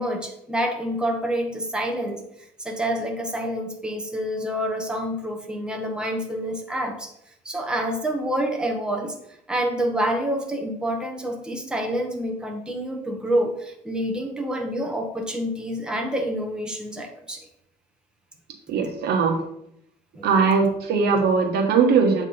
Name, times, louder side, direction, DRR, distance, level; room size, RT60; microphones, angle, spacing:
voice 1, 0.0-7.1 7.4-9.2 9.5-17.5 20.1-20.3, equal, 5° right, 2 dB, 1.1 m, -27 dB
voice 2, 18.7-19.4 20.2-22.3, right 5 dB, 75° right, 3 dB, 1.3 m, -20 dB
7.6 x 3.2 x 5.5 m, 0.76 s
cardioid pair, 110°, 17 cm